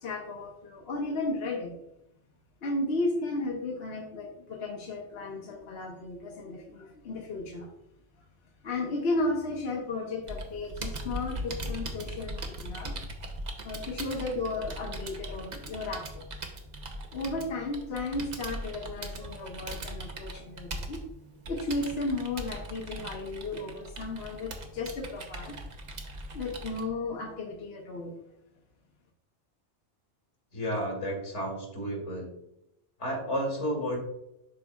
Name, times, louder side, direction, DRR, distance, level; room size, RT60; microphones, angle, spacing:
voice 1, 0.0-1.7 2.6-7.7 8.6-12.9 13.6-16.2 17.1-21.0 21.5-25.6 26.3-28.1, left 2 dB, 65° left, 0 dB, 1.1 m, -34 dB
Computer keyboard, 10.3-26.8, right 1 dB, 40° right, 0.8 m, -40 dB
voice 2, 30.5-32.3 33.0-34.0, equal, 80° left, -1 dB, 2.6 m, -32 dB
11.5 x 4.1 x 2.3 m, 0.84 s
omnidirectional pair, 1.2 m